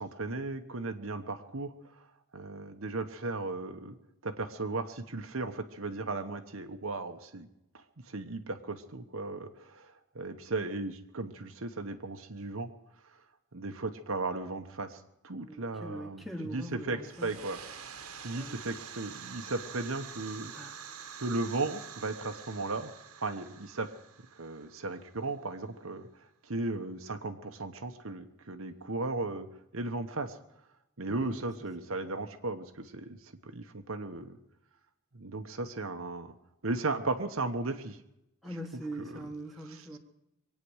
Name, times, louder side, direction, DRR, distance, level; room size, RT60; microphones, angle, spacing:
voice 1, 0.0-1.7 2.3-4.0 4.2-7.5 8.1-12.7 13.5-16.2 16.5-17.6 18.2-20.5 21.2-22.9 23.2-23.9 24.4-26.1 26.5-29.5 29.7-30.4 31.0-33.2 33.4-34.4 35.2-36.3 36.6-38.0, right 3 dB, 70° right, 7 dB, 1.1 m, -36 dB
voice 2, 15.4-17.4 18.3-18.7 20.5-20.8 31.1-31.5 31.8-32.0 38.4-40.0, right 1 dB, ahead, 3 dB, 1.6 m, -42 dB
sound 1, 17.0-25.5, right 7 dB, 85° right, 1.6 m, -47 dB
23.5 x 9.4 x 6.4 m, 0.86 s
head